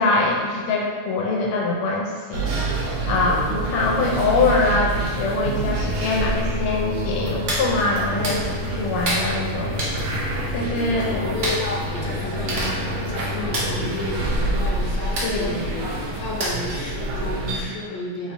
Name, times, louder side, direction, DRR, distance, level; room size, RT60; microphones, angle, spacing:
voice 1, 0.0-2.5 3.0-9.9 10.5-11.2 15.2-15.6, left 3 dB, 90° left, -2 dB, 1.6 m, -23 dB
sound 1, 2.3-17.7, right 1 dB, 85° right, 1.6 m, -27 dB
Hands, 7.5-7.7 8.2-8.4 9.0-9.3 9.8-10.0 11.4-11.6 12.3-12.4 12.5-12.7 13.0-13.2 13.5-13.7 15.2-15.3 16.4-16.7 17.2-17.3, right 1 dB, 55° right, 0.8 m, -26 dB
voice 2, 10.9-15.7 16.1-18.3, left 2 dB, 65° left, -4 dB, 1.5 m, -31 dB
4.0 x 3.0 x 4.2 m, 1.5 s
omnidirectional pair, 2.3 m